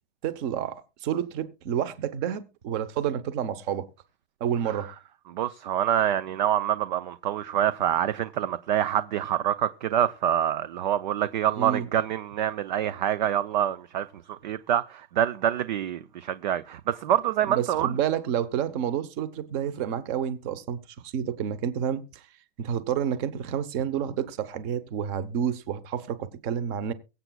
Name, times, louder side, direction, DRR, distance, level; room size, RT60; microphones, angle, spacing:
voice 1, 0.2-3.9 4.4-4.9 11.6-11.9 17.4-20.8 21.0-22.2 22.6-26.9, right 9 dB, 25° right, 0.9 m, -29 dB
voice 2, 5.3-17.9, right 10 dB, 40° right, 0.5 m, -26 dB
22.5 x 8.0 x 2.3 m
supercardioid pair, 170°, 36 cm